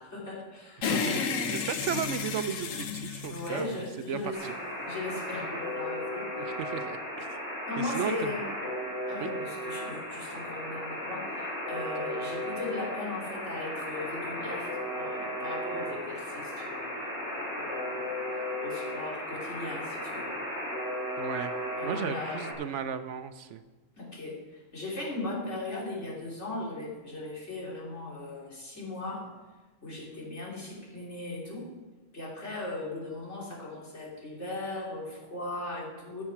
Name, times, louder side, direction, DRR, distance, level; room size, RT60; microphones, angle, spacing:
voice 1, 0.0-0.9 3.3-4.5 4.9-6.6 7.7-8.4 9.1-17.0 17.3-20.3 21.8-22.4 24.0-29.3 29.8-31.6 32.1-36.2, left 2 dB, 60° left, -5 dB, 3.4 m, -38 dB
sound 1, 0.8-4.3, left 6 dB, 80° left, 1.3 m, -32 dB
voice 2, 0.9-4.5 6.4-7.4 7.8-8.3 9.2-9.3 21.2-21.5 21.8-23.6, right 8 dB, 70° right, 11 dB, 0.9 m, -35 dB
Alarm, 4.3-22.5, left 1 dB, 40° left, 5.0 m, -35 dB
14.5 x 7.3 x 5.8 m, 1.2 s
omnidirectional pair, 1.3 m